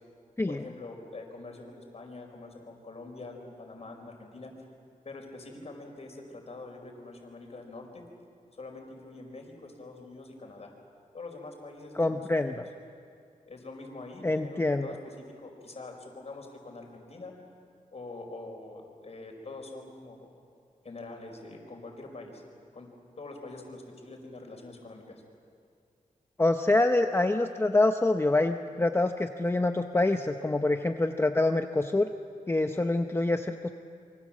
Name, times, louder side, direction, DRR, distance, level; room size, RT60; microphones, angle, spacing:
voice 1, 0.5-4.7 5.0-8.0 8.5-10.7 11.1-12.2 12.6-12.7 13.5-17.4 17.9-20.3 20.8-22.4 22.7-22.9 23.2-25.2, left 2 dB, 45° left, 2 dB, 4.8 m, -44 dB
voice 2, 12.0-12.7 14.2-14.9 26.4-32.1 32.5-33.7, left 2 dB, 15° left, 6 dB, 0.8 m, -26 dB
27.5 x 24.5 x 7.5 m, 2.3 s
wide cardioid pair, 120°, 14 cm